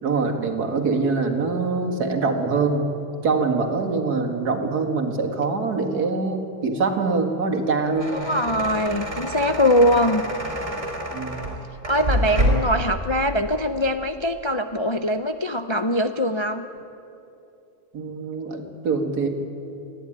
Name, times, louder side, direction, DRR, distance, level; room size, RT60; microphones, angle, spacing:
voice 1, 0.0-2.9 3.2-8.2 11.1-11.5 17.9-19.3, right 4 dB, 85° right, 4 dB, 2.4 m, -24 dB
sound 1, 7.6-12.8, equal, 40° right, 3.9 m, -27 dB
voice 2, 8.1-10.2 11.9-16.7, equal, 40° left, 7 dB, 0.4 m, -22 dB
28.0 x 11.0 x 10.0 m, 2.8 s
omnidirectional pair, 1.6 m